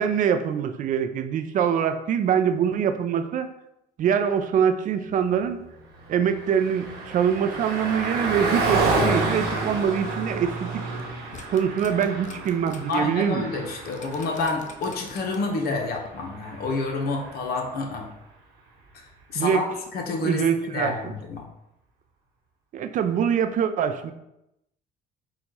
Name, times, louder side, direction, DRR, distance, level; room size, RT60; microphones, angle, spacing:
voice 1, 0.0-3.5 4.0-5.6 6.1-10.8 11.5-13.5 19.3-19.7 20.2-21.1 22.7-24.1, right 8 dB, 50° right, 8 dB, 0.4 m, -24 dB
Car passing by, 5.7-17.5, right 3 dB, 75° right, 1.1 m, -30 dB
sound 1, 10.9-13.0 13.3-13.5 13.9-15.6 16.0-16.1, left 5 dB, 45° left, 0.5 m, -46 dB
voice 2, 12.9-18.1 18.9-19.1 19.3-19.7 19.9-21.4, left 3 dB, 65° left, 2 dB, 0.9 m, -28 dB
4.0 x 2.3 x 4.6 m, 0.86 s
cardioid pair, 110°, 17 cm